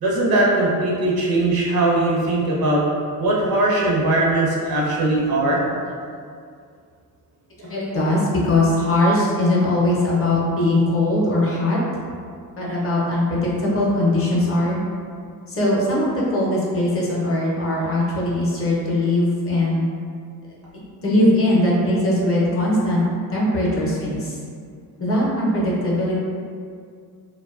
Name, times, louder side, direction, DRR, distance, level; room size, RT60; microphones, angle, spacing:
voice 1, 0.0-2.8 3.2-5.6 7.6-7.7, right 2 dB, 70° right, -4 dB, 0.7 m, -20 dB
voice 2, 7.7-11.8 12.6-14.8 15.5-19.9 21.0-23.0 23.3-24.4 25.0-26.2, left 1 dB, 35° left, -5 dB, 0.5 m, -20 dB
2.5 x 2.2 x 2.3 m, 2.2 s
cardioid pair, 130°, 37 cm